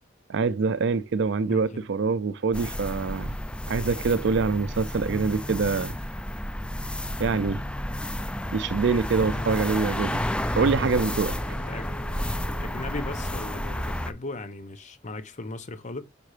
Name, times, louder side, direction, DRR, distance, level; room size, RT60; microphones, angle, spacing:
voice 1, 0.3-3.4 3.7-6.0 7.2-7.6 8.5-10.2 10.6-11.4, right 4 dB, 65° right, 0.5 m, -25 dB
voice 2, 1.5-1.8 9.2-9.5 11.7-11.9 12.6-16.0, left 2 dB, 40° left, 0.9 m, -37 dB
sound 1, 2.5-14.1, left 1 dB, 5° left, 0.5 m, -31 dB
Wind instrument woodwind instrument, 9.8-14.1, right 1 dB, 70° left, 1.6 m, -47 dB
5.3 x 3.8 x 4.9 m
head